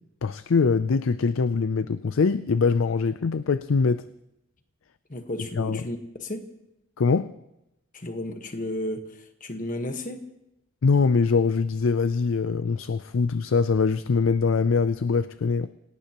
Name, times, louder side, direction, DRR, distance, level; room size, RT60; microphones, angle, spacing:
voice 1, 0.2-4.0 5.6-5.9 7.0-7.3 10.8-15.7, left 4 dB, 75° left, 0.5 m, -23 dB
voice 2, 5.1-6.4 7.9-10.2, left 1 dB, 40° left, 1.4 m, -33 dB
27.0 x 18.0 x 3.0 m
head